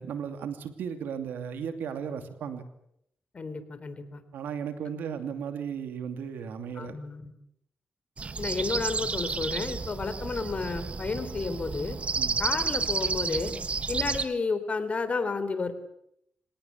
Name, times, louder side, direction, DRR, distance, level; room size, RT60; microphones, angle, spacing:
voice 1, 0.0-2.6 4.3-6.9 12.2-12.4 13.9-14.0, right 7 dB, 90° right, 8 dB, 2.7 m, -35 dB
voice 2, 3.3-4.2 6.7-7.3 8.4-12.0 12.4-13.5 13.9-15.7, left 4 dB, 45° left, 11 dB, 3.8 m, -31 dB
sound 1, 8.2-14.3, right 4 dB, 40° right, 1.5 m, -31 dB
25.5 x 18.5 x 8.5 m, 0.76 s
cardioid pair, 75°, 3 cm